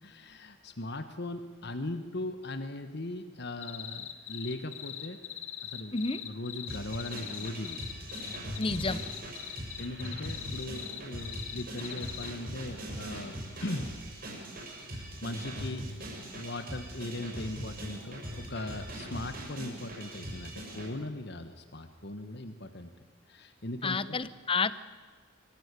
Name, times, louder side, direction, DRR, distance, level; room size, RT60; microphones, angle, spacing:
voice 1, 0.0-5.2 5.6-5.9 6.2-7.8 9.4-13.9 14.9-15.8 16.3-22.9 23.3-24.2, left 1 dB, 55° left, 9 dB, 1.4 m, -39 dB
sound 1, 3.6-12.3, left 11 dB, 80° left, 1.7 m, -41 dB
voice 2, 5.9-6.2 8.6-9.0 23.8-24.7, left 4 dB, 25° left, 16 dB, 0.8 m, -30 dB
sound 2, 6.7-20.9, right 1 dB, 45° right, 6.8 m, -41 dB
24.0 x 15.5 x 9.8 m, 1.5 s
head